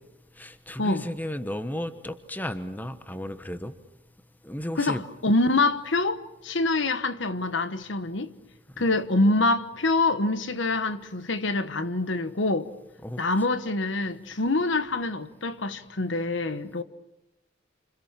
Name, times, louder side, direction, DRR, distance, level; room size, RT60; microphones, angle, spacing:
voice 1, 0.4-3.7 4.4-5.0 13.0-13.2, equal, 10° left, 1.2 m, -34 dB
voice 2, 4.8-8.3 8.8-12.7 13.2-16.8, left 2 dB, 70° left, 1.2 m, -25 dB
29.0 x 26.5 x 7.4 m
head